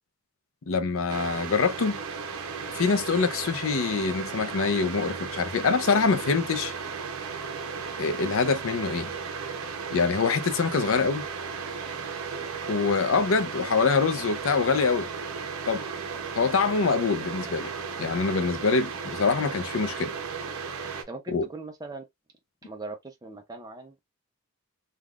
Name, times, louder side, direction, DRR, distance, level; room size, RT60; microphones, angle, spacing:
voice 1, 0.7-2.0 2.7-6.7 8.0-9.1 9.9-11.2 12.7-15.1 15.7-15.8 16.4-17.7 18.0-20.1 21.3-21.5, left 4 dB, 65° left, 0.5 m, -25 dB
sound 1, 1.1-21.0, right 5 dB, 75° right, 0.7 m, -35 dB
voice 2, 21.1-22.1 22.6-24.0, right 3 dB, 15° right, 0.4 m, -40 dB
3.4 x 2.3 x 2.3 m
head